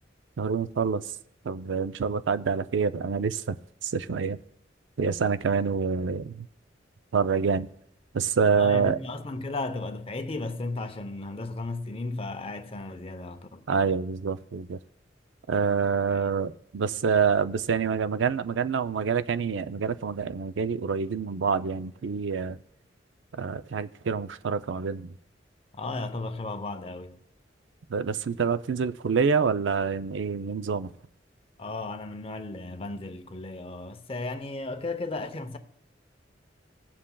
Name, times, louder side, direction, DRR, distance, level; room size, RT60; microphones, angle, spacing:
voice 1, 0.4-1.0 1.4-3.6 3.8-4.4 5.0-6.5 7.1-7.7 8.1-9.0 13.7-14.8 15.5-22.6 23.3-25.1 27.9-30.9, right 5 dB, 85° right, 0.5 m, -26 dB
voice 2, 8.5-13.7 16.1-16.3 25.7-27.2 31.6-35.6, left 2 dB, 30° left, 0.7 m, -35 dB
20.0 x 7.4 x 2.3 m
head